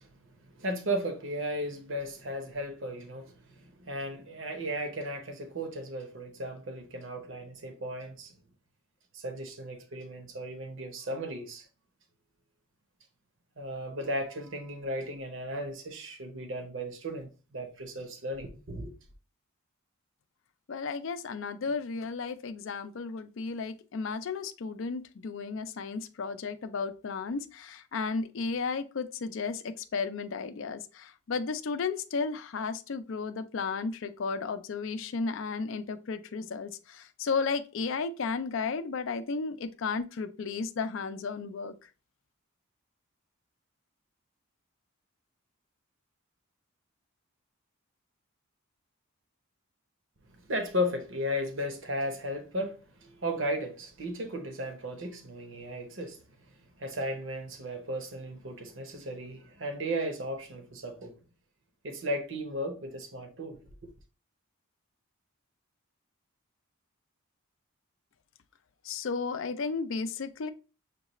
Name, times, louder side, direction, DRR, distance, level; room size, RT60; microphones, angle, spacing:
voice 1, 0.0-8.3 9.1-11.7 13.6-18.9 50.3-56.2 56.8-61.2 61.8-63.9, equal, 55° right, 0.8 m, -35 dB
voice 2, 20.7-41.7 68.8-70.5, left 4 dB, 60° left, 0.4 m, -34 dB
6.5 x 2.4 x 2.9 m
head